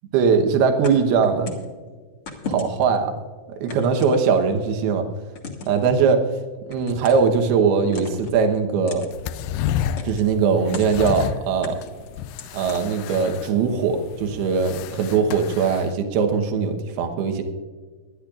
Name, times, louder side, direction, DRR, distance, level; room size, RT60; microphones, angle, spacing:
voice 1, 0.1-1.5 2.5-3.2 3.6-5.1 5.7-6.2 6.7-9.1 10.0-11.8 12.5-17.4, right 5 dB, 80° right, 5 dB, 3.0 m, -20 dB
sound 1, 0.8-1.7 2.3-3.0 3.7-4.6 5.3-5.8 6.7-7.3 7.9-8.4 8.9-9.1 10.0-10.4 10.7-11.2 11.6-13.5, left 3 dB, 50° left, 1.9 m, -36 dB
sound 2, 9.1-15.9, left 10 dB, 90° left, 1.9 m, -31 dB
24.0 x 10.5 x 2.4 m, 1.5 s
omnidirectional pair, 4.5 m